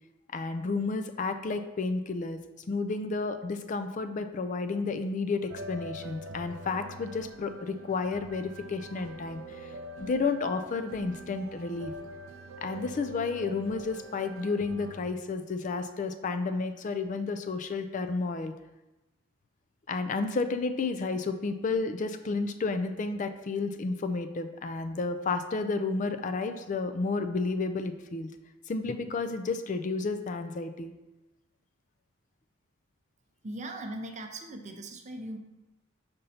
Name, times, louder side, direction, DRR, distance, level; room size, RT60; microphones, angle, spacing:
voice 1, 0.3-2.4 2.7-9.7 10.0-11.9 12.6-18.5 19.9-28.3 28.7-30.9, left 4 dB, 40° left, 9 dB, 0.4 m, -31 dB
sound 1, 5.5-15.1, right 1 dB, 85° right, 0.5 m, -44 dB
voice 2, 33.4-35.4, right 1 dB, 35° right, 5 dB, 0.6 m, -39 dB
5.2 x 4.1 x 5.6 m, 1.0 s
head